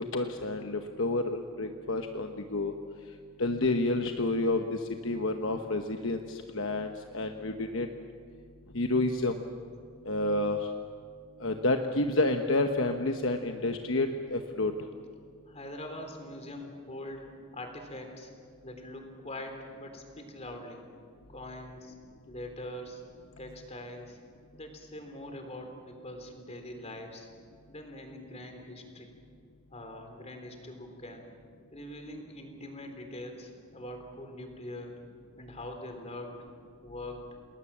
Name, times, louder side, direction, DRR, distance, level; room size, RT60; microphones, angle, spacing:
voice 1, 0.0-2.7 3.4-7.9 8.7-9.4 10.0-10.7 11.4-14.7, left 2 dB, 60° left, 5 dB, 1.1 m, -29 dB
voice 2, 15.5-18.3 18.6-20.8 21.3-21.9 22.3-23.0 23.4-24.2 24.5-27.3 27.7-29.1 29.7-31.3 31.7-35.0 35.4-36.4 36.8-37.3, left 1 dB, 30° left, 5 dB, 3.6 m, -43 dB
29.5 x 20.0 x 7.4 m, 2.3 s
head